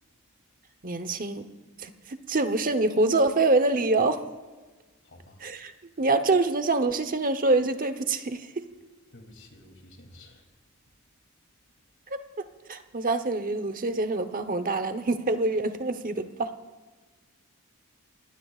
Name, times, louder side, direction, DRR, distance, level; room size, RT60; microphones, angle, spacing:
voice 1, 0.8-1.5 1.8-4.2 5.4-5.7 6.0-8.5 12.1-12.2 12.7-16.5, right 2 dB, 40° right, 9 dB, 1.0 m, -25 dB
voice 2, 5.0-5.4 9.1-10.4, left 1 dB, 60° left, 3 dB, 3.0 m, -51 dB
26.5 x 18.5 x 2.5 m, 1.3 s
head